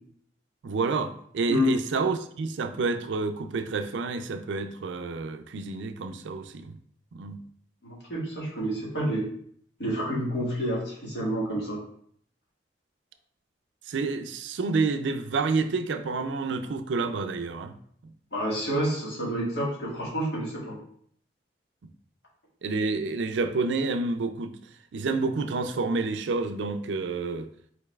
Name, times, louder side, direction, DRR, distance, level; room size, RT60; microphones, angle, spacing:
voice 1, 0.6-6.8 7.1-7.4 13.9-17.7 18.0-18.1 22.6-24.6 24.9-27.5, right 4 dB, 90° right, 0.4 m, -29 dB
voice 2, 7.8-9.3 9.8-11.8 18.3-20.8, equal, 70° left, 1.7 m, -29 dB
5.2 x 3.9 x 2.3 m
head